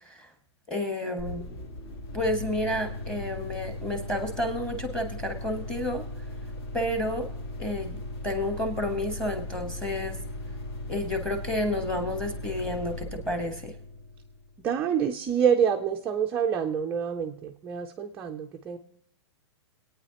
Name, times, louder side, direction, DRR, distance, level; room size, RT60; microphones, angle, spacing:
voice 1, 0.7-1.5 2.1-6.1 6.7-7.3 7.6-8.0 8.2-10.2 10.9-13.7, left 1 dB, 5° left, 6 dB, 1.1 m, -30 dB
sound 1, 1.2-14.7, left 1 dB, 60° left, 2.2 m, -38 dB
voice 2, 14.6-18.8, right 8 dB, 10° right, 2 dB, 0.3 m, -27 dB
23.5 x 9.1 x 2.8 m, 0.79 s
hypercardioid pair, 165°, 15 cm